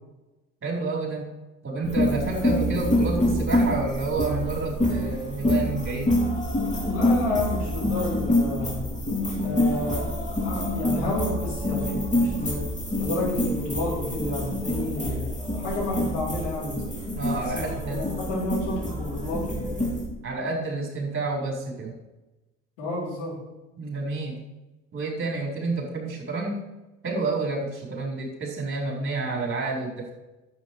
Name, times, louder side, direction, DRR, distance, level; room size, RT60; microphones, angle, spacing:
voice 1, 0.6-1.3 1.6-6.1 17.1-18.0 20.2-21.9 23.8-24.4 24.9-26.6 27.0-30.1, right 3 dB, 35° right, -1 dB, 4.4 m, -29 dB
sound 1, 1.8-20.0, left 1 dB, 20° left, 4.1 m, -26 dB
voice 2, 6.9-8.9 9.4-12.6 13.0-16.8 17.4-19.9 22.8-23.4, left 2 dB, 80° left, -6 dB, 4.5 m, -31 dB
11.0 x 8.1 x 4.8 m, 1.0 s
hypercardioid pair, 55°, 36 cm